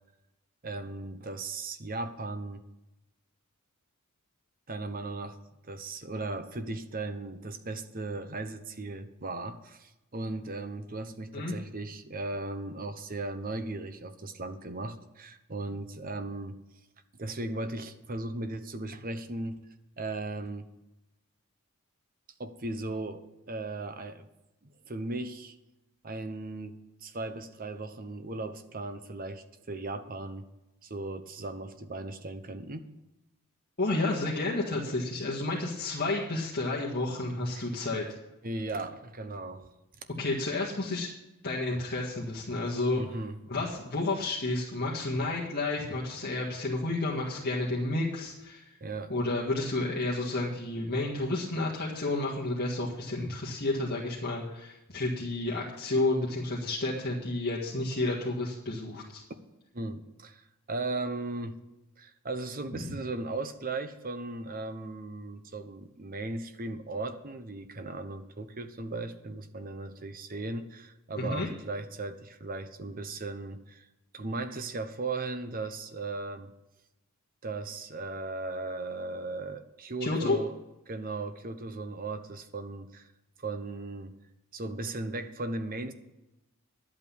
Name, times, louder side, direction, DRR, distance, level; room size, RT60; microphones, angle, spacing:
voice 1, 0.6-2.6 4.7-5.4 5.7-16.6 17.2-19.6 20.0-20.7 22.4-24.3 24.6-25.6 26.0-30.5 30.8-32.9 37.5-37.7 38.4-39.7 43.0-43.4 48.8-49.1 59.7-61.6 62.0-73.9 74.1-76.5 77.4-80.6 80.9-83.1 83.4-84.2 84.5-85.9, right 2 dB, 40° right, 9 dB, 1.0 m, -37 dB
voice 2, 33.8-38.0 40.2-41.1 41.4-43.0 43.5-48.8 49.1-59.2 62.7-62.9 71.2-71.5 80.0-80.4, left 2 dB, 45° left, -5 dB, 1.9 m, -31 dB
11.5 x 8.4 x 7.1 m, 0.95 s
head